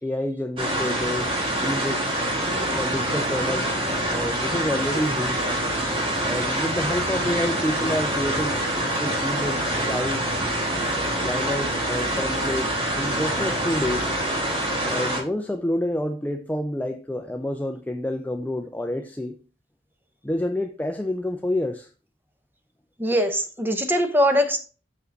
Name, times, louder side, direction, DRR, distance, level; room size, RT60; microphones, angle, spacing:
voice 1, 0.0-1.3 1.6-2.2 2.7-5.5 6.2-8.6 9.0-10.4 11.2-14.1 14.8-19.4 20.2-21.9, left 1 dB, 10° left, 0.3 m, -28 dB
sound 1, 0.6-15.2, right 1 dB, 30° right, 1.6 m, -25 dB
voice 2, 23.0-24.6, equal, 10° right, 0.7 m, -21 dB
6.3 x 5.4 x 3.9 m
head